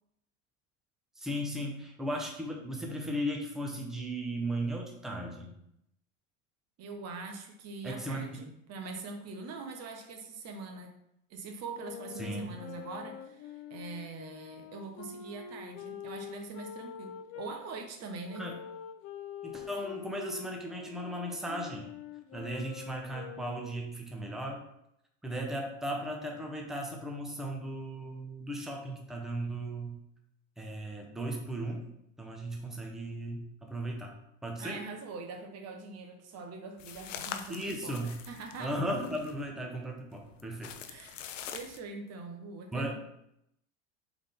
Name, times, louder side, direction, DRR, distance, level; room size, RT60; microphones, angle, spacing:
voice 1, 1.2-5.5 7.8-8.3 12.2-12.5 18.3-18.5 19.4-21.9 22.3-24.6 25.2-30.0 30.6-31.8 32.2-34.8 37.5-38.2 38.6-40.7 42.7-42.9, right 1 dB, ahead, 0 dB, 0.8 m, -36 dB
voice 2, 6.8-10.9 11.3-18.4 34.6-38.0 38.3-38.8 40.9-41.2 41.5-42.9, right 3 dB, 45° right, 4 dB, 1.0 m, -43 dB
sound 1, 11.7-17.5 18.3-23.9, left 8 dB, 40° left, 0.6 m, -45 dB
sound 2, 36.8-39.5 40.1-41.8, left 8 dB, 85° left, 0.6 m, -44 dB
3.7 x 3.5 x 3.7 m, 0.78 s
hypercardioid pair, 90°, 37 cm